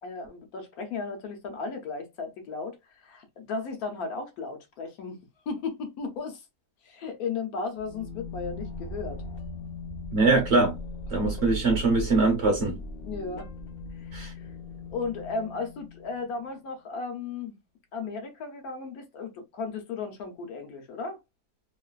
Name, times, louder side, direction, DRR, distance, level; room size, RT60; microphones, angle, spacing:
voice 1, 0.0-5.2 5.5-6.4 6.8-9.2 11.2-11.4 13.0-13.5 14.0-14.3 14.9-17.6 17.9-21.2, left 4 dB, 65° left, 1.2 m, -35 dB
sound 1, 7.8-16.3, left 1 dB, 85° left, 0.5 m, -38 dB
voice 2, 10.1-10.8 11.1-12.8 14.1-14.3, right 3 dB, 55° right, 0.9 m, -22 dB
3.0 x 2.4 x 2.3 m
omnidirectional pair, 1.8 m